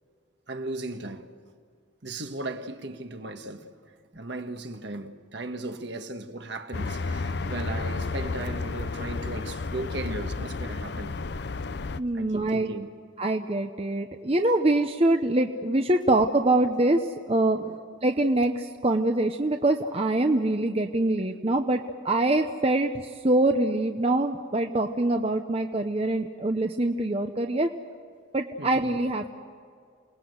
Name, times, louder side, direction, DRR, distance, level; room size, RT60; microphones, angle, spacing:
voice 1, 0.5-1.3 2.0-11.2 12.1-13.0 17.6-17.8 28.6-28.8, right 2 dB, 55° right, 1.5 m, -37 dB
sound 1, 6.7-12.0, left 3 dB, 55° left, 0.6 m, -32 dB
voice 2, 12.0-12.7 13.2-17.6 18.0-27.7 28.3-29.3, right 2 dB, 30° right, 0.8 m, -24 dB
28.0 x 20.0 x 8.0 m
head